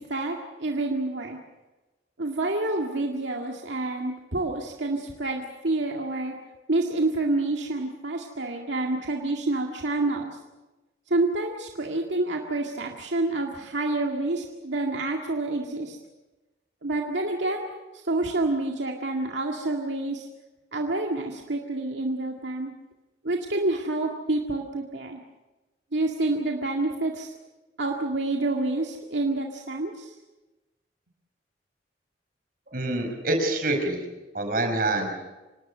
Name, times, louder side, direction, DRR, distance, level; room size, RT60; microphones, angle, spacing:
voice 1, 0.0-1.4 2.2-6.3 6.7-10.3 11.1-16.0 16.8-17.7 18.0-20.3 20.7-22.7 23.2-25.2 25.9-27.3 27.8-30.1, right 2 dB, 80° right, 1 dB, 2.0 m, -28 dB
voice 2, 32.7-34.0 34.3-35.1, right 2 dB, 50° right, 4 dB, 5.2 m, -26 dB
26.5 x 19.0 x 6.7 m, 1.1 s
head